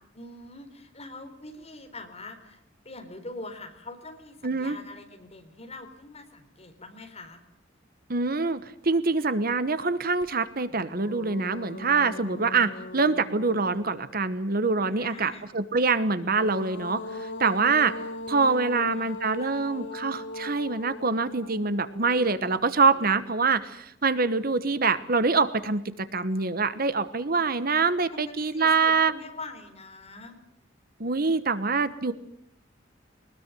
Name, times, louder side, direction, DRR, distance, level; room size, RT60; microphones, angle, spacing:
voice 1, 0.1-7.4 14.9-15.5 18.4-19.6 28.1-30.4, left 2 dB, 35° left, 6 dB, 4.0 m, -44 dB
voice 2, 4.4-4.8 8.1-18.0 18.3-29.1 31.0-32.1, right 4 dB, 50° right, 13 dB, 1.2 m, -25 dB
sound 1, 10.2-10.3 10.7-14.4 16.0-23.3, left 2 dB, 70° left, 2.0 m, -40 dB
22.0 x 20.5 x 9.2 m, 0.74 s
head